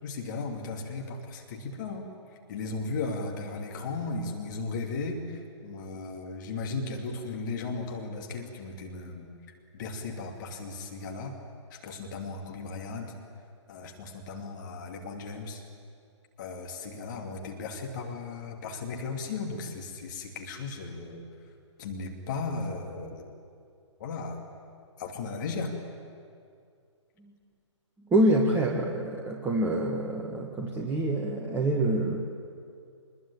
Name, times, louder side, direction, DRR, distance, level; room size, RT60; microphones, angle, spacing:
voice 1, 0.0-2.1 2.5-9.3 9.7-11.4 11.7-13.1 13.7-15.6 16.4-21.2 21.8-23.3 24.0-24.4 25.0-25.7, left 3 dB, 40° left, 2 dB, 2.7 m, -36 dB
voice 2, 28.1-32.2, right 1 dB, 10° right, -2 dB, 1.6 m, -26 dB
25.0 x 21.5 x 8.9 m, 2.3 s
figure-of-eight pair, 130°, 16 cm